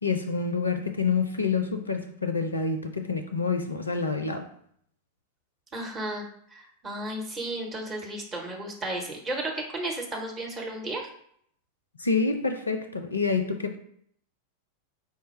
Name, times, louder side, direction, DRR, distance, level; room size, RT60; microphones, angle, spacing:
voice 1, 0.0-4.5 12.0-13.8, left 4 dB, 75° left, 7 dB, 0.4 m, -27 dB
voice 2, 5.7-6.2 6.5-11.1, right 1 dB, 20° right, -1 dB, 1.0 m, -33 dB
4.5 x 2.1 x 4.4 m, 0.67 s
figure-of-eight pair, 90°, 0 cm